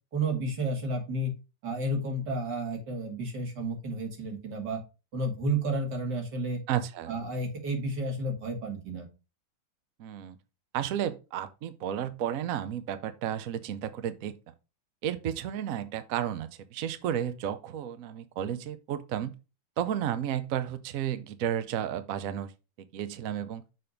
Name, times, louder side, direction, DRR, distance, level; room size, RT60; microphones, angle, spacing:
voice 1, 0.1-1.3 1.6-4.8 5.1-6.6 7.1-9.1, right 1 dB, 55° right, 2.5 m, -31 dB
voice 2, 6.7-7.1 10.0-10.4 10.7-14.4 15.0-19.3 19.8-22.5 22.9-23.6, right 10 dB, 75° right, 0.7 m, -32 dB
6.6 x 4.2 x 5.2 m
omnidirectional pair, 2.3 m